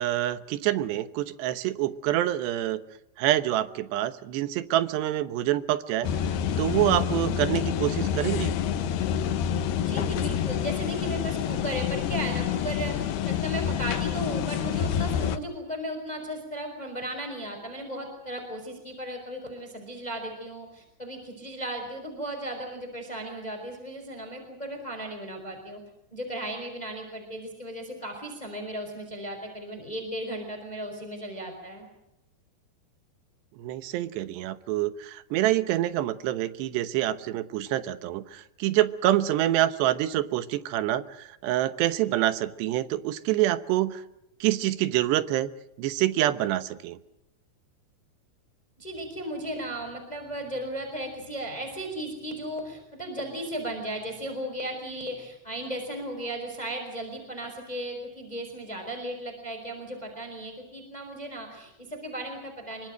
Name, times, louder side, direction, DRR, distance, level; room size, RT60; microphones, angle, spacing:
voice 1, 0.0-2.8 3.2-6.1 6.6-8.5 33.6-44.0 44.4-45.5 45.8-47.0, right 14 dB, 75° right, 13 dB, 3.2 m, -26 dB
sound 1, 6.0-15.4, left 9 dB, 70° left, 3.1 m, -28 dB
voice 2, 9.8-25.8 26.1-31.9 48.8-62.9, right 1 dB, 10° left, 4 dB, 4.8 m, -36 dB
25.5 x 24.5 x 6.5 m, 0.86 s
omnidirectional pair, 5.1 m